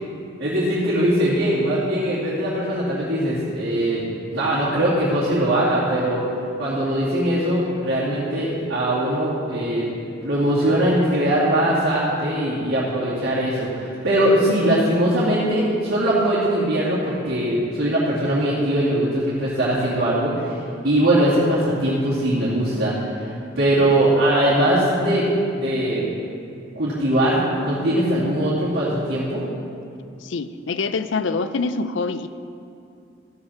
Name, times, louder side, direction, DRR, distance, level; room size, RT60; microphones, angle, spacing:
voice 1, 0.4-4.0 4.3-6.2 6.6-9.9 10.2-26.1 26.7-29.4, right 1 dB, 90° right, -10 dB, 2.7 m, -21 dB
voice 2, 30.2-32.3, left 4 dB, 75° left, 12 dB, 0.5 m, -25 dB
15.0 x 5.6 x 5.8 m, 2.5 s
head